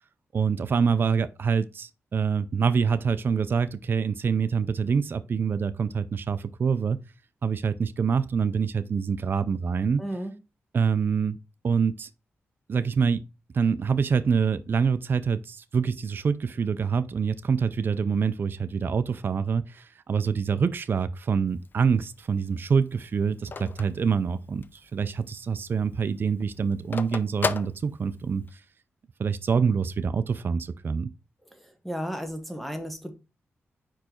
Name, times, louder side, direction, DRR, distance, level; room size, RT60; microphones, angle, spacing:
voice 1, 0.3-7.0 7.4-10.0 10.7-11.4 11.6-12.1 12.7-13.2 13.5-28.6 29.2-31.1, right 6 dB, 50° right, 0.4 m, -26 dB
voice 2, 10.0-10.3 31.5-33.1, equal, ahead, 1.0 m, -34 dB
Telephone, 21.5-24.9 25.3-25.4 25.6-28.5, left 5 dB, 45° left, 0.5 m, -34 dB
4.8 x 4.6 x 4.3 m
wide cardioid pair, 100°, 5 cm